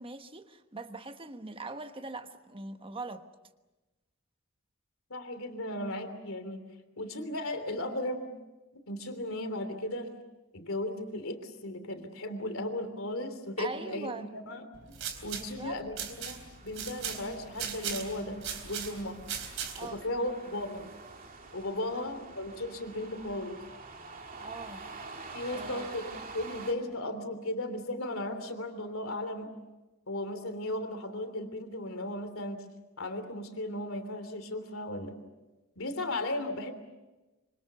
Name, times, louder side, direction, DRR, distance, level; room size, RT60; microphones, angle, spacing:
voice 1, 0.0-3.2 13.6-14.3 15.4-15.8 19.7-20.0 21.9-22.1 24.4-24.9 25.5-25.9, right 3 dB, 25° right, 1.2 m, -42 dB
voice 2, 5.1-6.6 7.0-8.3 8.9-10.1 10.5-19.2 19.8-20.9 21.5-23.6 25.3-29.5 30.1-32.6 33.0-35.2 35.8-36.7, left 1 dB, 70° left, 3.2 m, -36 dB
sound 1, 14.7-20.0, right 7 dB, 65° right, 3.9 m, -39 dB
sound 2, 16.5-26.7, right 3 dB, 40° right, 2.7 m, -47 dB
26.0 x 25.5 x 6.9 m
head